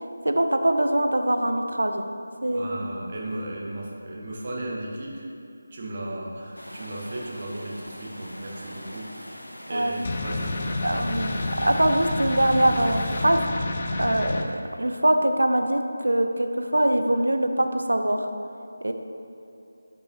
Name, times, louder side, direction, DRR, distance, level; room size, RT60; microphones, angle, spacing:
voice 1, 0.2-2.0 2.4-2.8 9.7-10.0 10.8-13.4 14.0-14.5 14.8-18.3 18.8-18.9, right 1 dB, 75° right, 6 dB, 0.6 m, -23 dB
voice 2, 2.5-5.2 5.7-10.6 11.1-11.2, right 1 dB, 40° right, -3 dB, 1.2 m, -35 dB
sound 1, 6.5-13.3, equal, 80° left, 1.0 m, -41 dB
sound 2, 10.0-14.4, left 2 dB, 35° left, 0.5 m, -29 dB
10.5 x 5.4 x 2.8 m, 2.7 s
figure-of-eight pair, 160°, 0 cm